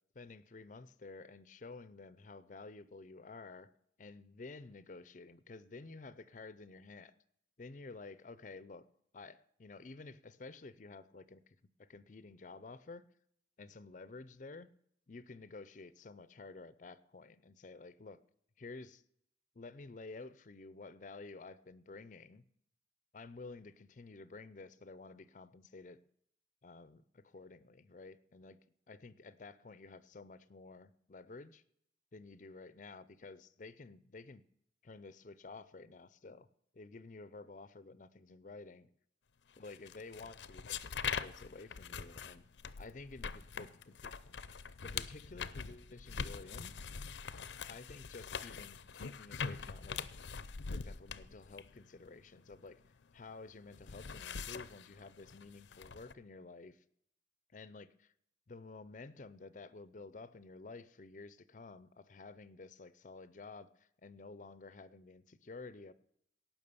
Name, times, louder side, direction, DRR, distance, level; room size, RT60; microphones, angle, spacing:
voice 1, 0.1-3.7 4.0-7.1 7.6-8.9 9.1-13.0 13.6-14.7 15.1-18.2 18.6-19.0 19.5-22.4 23.1-26.0 26.6-28.6 28.9-31.6 32.1-34.4 34.8-36.5 36.7-38.9 39.6-42.5 42.8-44.1 44.8-46.7 47.7-50.1 50.7-52.8 53.1-56.8 57.5-58.1 58.5-65.9, left 3 dB, 45° left, 16 dB, 0.5 m, -52 dB
sound 1, 39.6-53.1 53.5-56.1, left 6 dB, 85° left, 0.6 m, -43 dB
18.0 x 6.0 x 6.8 m, 0.70 s
head